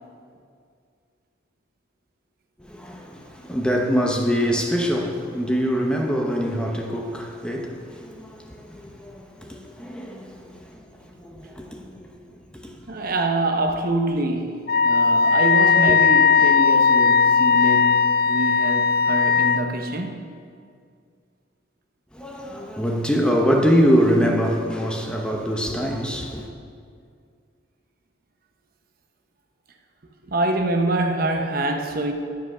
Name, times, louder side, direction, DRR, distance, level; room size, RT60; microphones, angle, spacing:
voice 1, 2.7-10.7 11.2-12.2 12.5-12.7 22.1-26.5, equal, 5° left, 0.8 m, -24 dB
voice 2, 12.9-20.2 30.2-32.1, right 2 dB, 50° right, 0.9 m, -25 dB
Wind instrument woodwind instrument, 14.7-19.6, left 5 dB, 50° left, 0.4 m, -17 dB
11.0 x 7.6 x 6.1 m
head